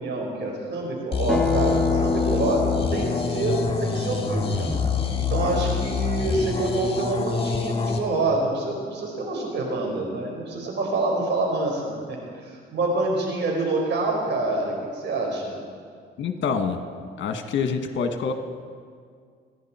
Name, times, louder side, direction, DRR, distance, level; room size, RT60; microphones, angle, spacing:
voice 1, 0.0-2.6 2.9-4.7 5.3-15.6, right 2 dB, 65° right, 0 dB, 4.8 m, -27 dB
sound 1, 1.1-8.0, left 5 dB, 30° left, 2.1 m, -26 dB
Acoustic guitar, 1.3-6.5, left 3 dB, 5° left, 1.6 m, -29 dB
voice 2, 16.2-16.8 17.2-18.3, left 5 dB, 70° left, 6 dB, 1.5 m, -26 dB
27.0 x 11.0 x 4.4 m, 2.1 s
cardioid pair, 90°, 20 cm